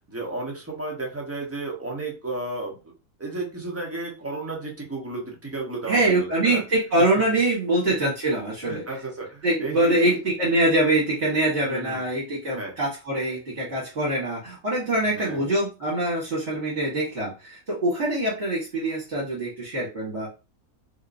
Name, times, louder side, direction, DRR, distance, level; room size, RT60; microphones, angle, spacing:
voice 1, 0.1-2.8 3.2-6.6 8.0-8.1 8.6-10.2 11.6-12.0 12.5-12.7 14.9-15.5, right 2 dB, 10° right, -1 dB, 0.8 m, -33 dB
voice 2, 5.9-8.8 9.4-20.3, right 1 dB, 50° right, -7 dB, 1.5 m, -24 dB
3.7 x 2.7 x 2.6 m, 0.31 s
omnidirectional pair, 1.6 m